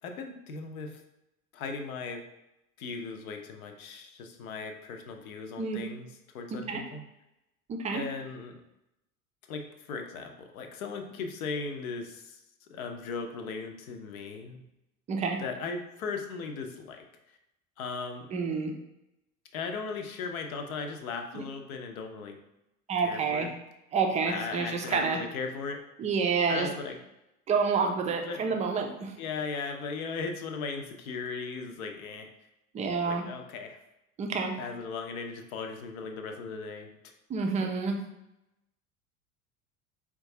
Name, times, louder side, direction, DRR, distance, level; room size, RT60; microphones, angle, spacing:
voice 1, 0.0-1.0 1.5-2.3 2.8-7.0 7.9-8.6 9.5-12.4 12.7-14.6 15.4-17.4 17.8-18.3 19.5-22.4 23.0-23.5 24.3-25.9 26.5-27.0 28.2-28.4 29.2-32.3 33.1-33.8 34.6-36.9, left 4 dB, 65° left, 4 dB, 0.7 m, -37 dB
voice 2, 7.7-8.0 15.1-15.4 18.3-18.7 21.3-21.4 22.9-23.5 23.9-25.2 26.0-26.7 27.5-29.1 32.7-33.3 34.2-34.5 37.3-38.0, right 5 dB, 15° right, 3 dB, 0.4 m, -28 dB
4.4 x 2.3 x 2.7 m, 0.90 s
figure-of-eight pair, 70°, 45 cm